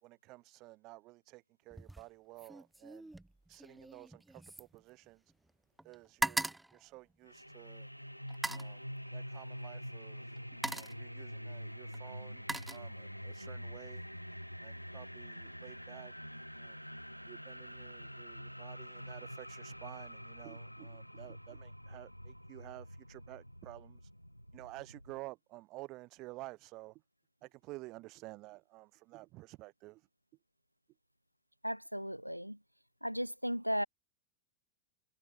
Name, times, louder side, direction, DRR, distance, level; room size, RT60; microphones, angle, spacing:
voice 1, 0.0-3.1 3.5-5.2 5.8-7.9 8.5-8.8 9.1-10.3 10.7-14.0 14.6-16.1 16.6-16.8 17.3-24.1 24.5-27.0 27.4-30.1, right 21 dB, 40° right, 6.1 m, -52 dB
sound 1, 1.7-2.1 2.4-5.5 5.8-7.7 8.3-8.8 9.8-10.0 10.4-11.1 11.9-13.3 13.7-14.1, right 2 dB, 5° right, 0.6 m, -40 dB
sound 2, 7.3-25.2, equal, 90° left, 0.7 m, -46 dB
voice 2, 31.6-32.6 33.0-33.8, equal, 90° right, 0.7 m, -35 dB
figure-of-eight pair, 90°, 0 cm